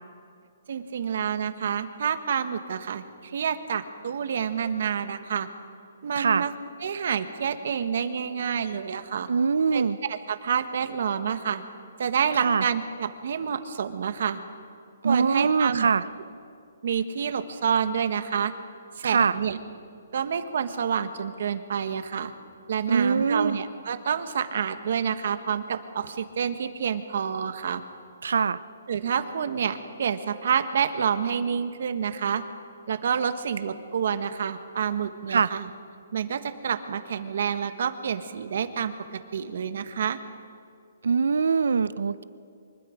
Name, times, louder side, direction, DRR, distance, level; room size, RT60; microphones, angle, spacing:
voice 1, 0.7-5.5 6.0-6.5 6.8-9.3 9.7-11.6 12.0-14.4 15.0-15.9 16.8-18.5 19.0-19.6 20.1-22.3 22.7-27.8 28.9-32.4 32.9-35.7 36.1-40.2, right 7 dB, 55° right, 9 dB, 1.3 m, -28 dB
voice 2, 9.3-10.0 12.4-12.6 15.0-16.0 19.0-19.3 22.9-23.6 28.2-28.6 35.3-35.5 41.0-42.2, right 5 dB, 80° right, 16 dB, 0.6 m, -23 dB
24.5 x 21.5 x 5.2 m, 2.3 s
hypercardioid pair, 165°, 0 cm